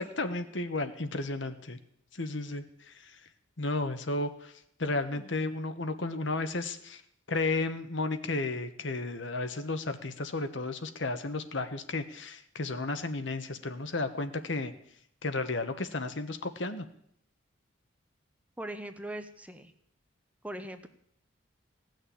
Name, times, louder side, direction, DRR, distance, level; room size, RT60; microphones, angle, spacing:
voice 1, 0.0-1.8 2.1-3.2 3.6-4.5 4.8-7.0 7.3-14.7 15.2-16.8, left 2 dB, 70° left, 9 dB, 1.2 m, -33 dB
voice 2, 18.6-19.7 20.4-20.9, right 1 dB, 5° right, 8 dB, 0.8 m, -40 dB
17.0 x 6.6 x 9.9 m, 0.71 s
head